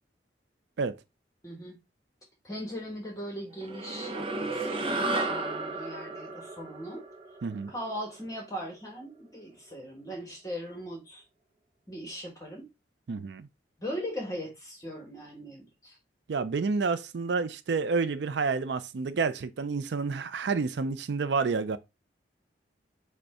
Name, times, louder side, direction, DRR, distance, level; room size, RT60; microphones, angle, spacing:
voice 1, 1.4-1.8 2.4-7.0 7.7-11.2 11.9-12.7 13.8-16.0, equal, 20° left, 1.1 m, -39 dB
sound 1, 3.6-8.3, right 2 dB, 30° right, 0.8 m, -33 dB
voice 2, 7.4-7.7 13.1-13.5 16.3-21.8, right 4 dB, 75° right, 0.4 m, -29 dB
5.0 x 2.2 x 4.8 m
head